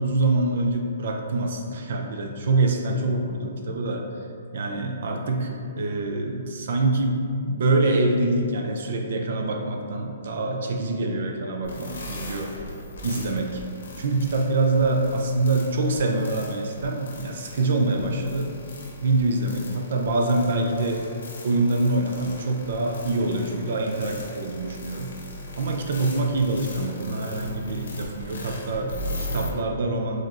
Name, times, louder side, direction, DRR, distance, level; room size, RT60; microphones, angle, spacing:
voice 1, 0.0-4.1 4.5-12.7 13.0-13.6 14.0-18.5 19.0-21.0 21.4-25.1 25.6-30.2, right 2 dB, 55° right, 2 dB, 0.5 m, -25 dB
sound 1, 11.6-29.5, left 1 dB, 90° left, 1.0 m, -38 dB
4.9 x 3.0 x 2.6 m, 2.5 s
hypercardioid pair, 170°, 0 cm